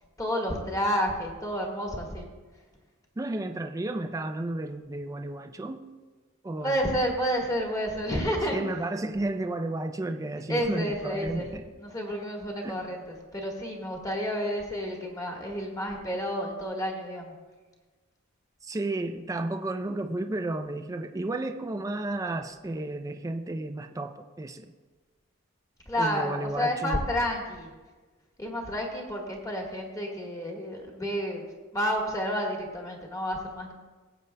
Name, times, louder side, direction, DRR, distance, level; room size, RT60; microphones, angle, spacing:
voice 1, 0.2-2.2 6.6-8.6 10.5-11.5 11.8-13.0 13.3-17.3 25.8-27.7 28.4-31.5 31.7-33.7, equal, 15° left, 0 dB, 1.5 m, -30 dB
voice 2, 3.2-5.9 6.4-6.9 8.5-11.7 12.6-12.8 18.6-24.7 26.0-27.0, right 2 dB, 15° right, 6 dB, 0.4 m, -32 dB
18.5 x 7.9 x 2.2 m, 1.3 s
head